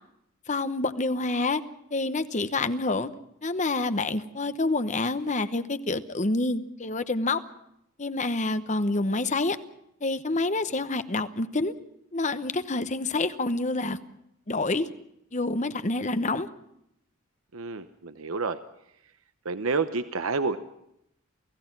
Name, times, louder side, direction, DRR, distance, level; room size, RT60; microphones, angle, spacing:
voice 1, 0.5-1.6 1.9-3.1 3.4-7.4 8.0-9.6 10.0-11.7 12.1-14.0 14.5-14.9 15.3-16.5, left 2 dB, 35° left, 12 dB, 1.0 m, -27 dB
voice 2, 17.5-18.6 19.4-20.6, right 4 dB, 85° right, 11 dB, 0.9 m, -29 dB
29.0 x 16.5 x 6.0 m, 0.80 s
head